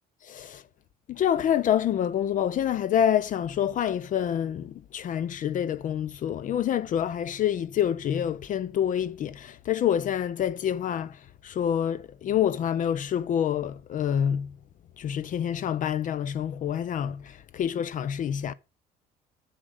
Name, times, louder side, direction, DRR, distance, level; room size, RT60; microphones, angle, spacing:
voice 1, 0.3-0.6 1.1-11.2 11.4-14.5 15.0-18.5, left 9 dB, 50° left, 0.5 m, -27 dB
7.3 x 6.6 x 6.4 m
cardioid pair, 110°, 17 cm